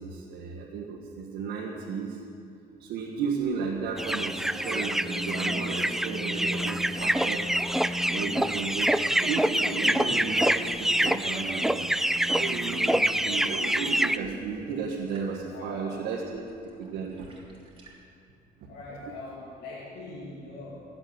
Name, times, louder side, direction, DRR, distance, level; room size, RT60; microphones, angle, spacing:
voice 1, 0.0-2.2 2.8-16.4 16.8-17.3 19.0-19.1, right 5 dB, 85° right, -4 dB, 1.7 m, -34 dB
sound 1, 4.0-14.2, right 1 dB, ahead, 0.3 m, -26 dB
sound 2, 4.4-18.0, right 2 dB, 30° right, 3.2 m, -53 dB
voice 2, 15.5-16.0 18.7-21.0, left 2 dB, 80° left, -5 dB, 2.4 m, -42 dB
14.5 x 8.0 x 9.6 m, 2.5 s
cardioid pair, 110°, 17 cm